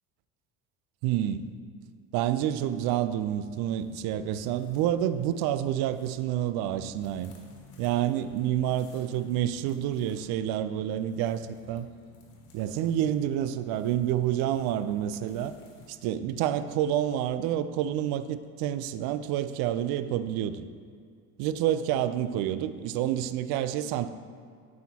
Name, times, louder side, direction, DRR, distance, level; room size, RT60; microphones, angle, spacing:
voice 1, 1.0-1.5 2.1-7.3 7.8-11.9 12.5-15.5 15.9-20.7 21.4-24.1, right 11 dB, 55° right, 13 dB, 0.5 m, -28 dB
sound 1, 2.6-15.9, left 2 dB, 85° left, 1.4 m, -55 dB
8.9 x 6.5 x 2.8 m, 2.2 s
hypercardioid pair, 80°, 44 cm